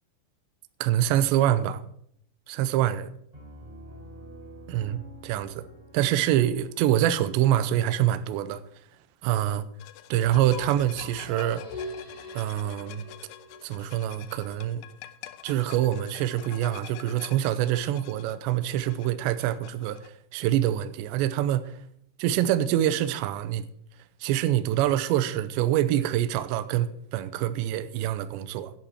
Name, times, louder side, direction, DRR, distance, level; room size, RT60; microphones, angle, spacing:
voice 1, 0.8-1.8 2.5-3.1 4.7-5.7 5.9-8.6 9.2-9.6 10.1-11.9 12.3-13.0 13.6-14.8 15.4-21.8 22.2-23.6 24.2-28.7, right 12 dB, 85° right, 2.5 m, -25 dB
Piano, 3.3-8.9, right 1 dB, 10° right, 3.6 m, -49 dB
sound 1, 9.8-20.1, left 13 dB, 80° left, 3.0 m, -47 dB
sound 2, 10.2-14.2, left 2 dB, 25° left, 3.3 m, -42 dB
11.5 x 11.0 x 4.4 m
omnidirectional pair, 5.9 m